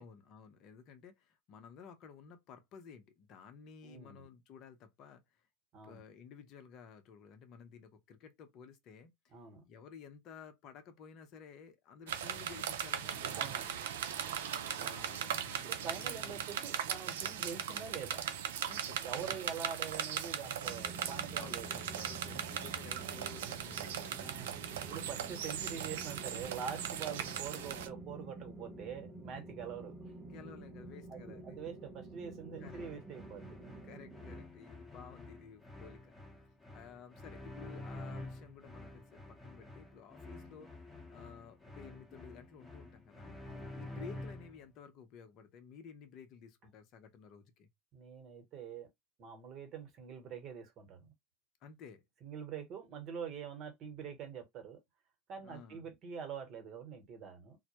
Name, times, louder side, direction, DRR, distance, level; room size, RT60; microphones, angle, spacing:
voice 1, 0.0-5.5 5.8-9.3 9.7-13.5 14.6-16.4 18.6-19.4 21.3-24.4 30.2-31.6 32.6-32.8 33.8-43.4 43.7-47.7 51.6-52.0 55.4-55.9, left 6 dB, 50° left, 0.7 m, -54 dB
voice 2, 3.8-4.3 5.7-6.0 9.3-9.6 13.3-13.7 15.6-18.2 19.0-21.7 24.2-24.6 24.9-30.1 31.1-33.6 43.5-43.8 47.9-48.9 49.2-51.1 52.2-54.8 55.3-57.6, right 7 dB, 45° right, 1.0 m, -45 dB
sound 1, 12.1-27.9, right 9 dB, 75° right, 0.4 m, -39 dB
sound 2, 20.6-34.4, right 2 dB, 25° right, 1.0 m, -50 dB
sound 3, 32.6-44.6, left 1 dB, 10° left, 0.9 m, -49 dB
2.1 x 2.0 x 2.8 m
hypercardioid pair, 95°, 0 cm